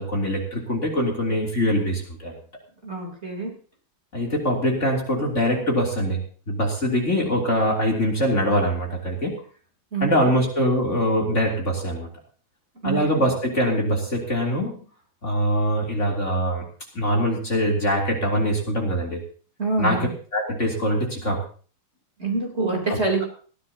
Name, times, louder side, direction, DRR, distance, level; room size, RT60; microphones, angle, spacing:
voice 1, 0.0-2.3 4.1-6.2 6.5-9.4 10.0-12.1 12.8-14.8 15.2-16.6 17.0-19.2 19.8-21.4 22.9-23.0, equal, 35° left, -1 dB, 3.5 m, -23 dB
voice 2, 2.8-3.5 9.9-10.4 12.8-13.3 19.6-20.1 22.2-23.2, right 3 dB, 30° right, 0 dB, 3.9 m, -26 dB
20.5 x 15.5 x 2.9 m, 0.41 s
omnidirectional pair, 2.2 m